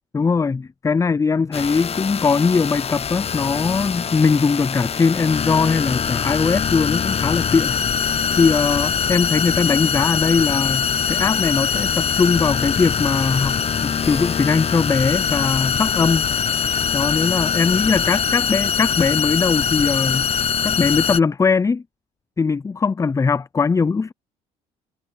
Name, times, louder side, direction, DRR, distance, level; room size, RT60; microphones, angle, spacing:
voice 1, 0.1-7.8 8.3-16.3 16.9-20.3 20.6-21.8 22.4-24.1, left 5 dB, 20° left, 0.4 m, -20 dB
sound 1, 1.5-21.2, left 7 dB, 40° left, 0.9 m, -23 dB
supercardioid pair, 75°, 16 cm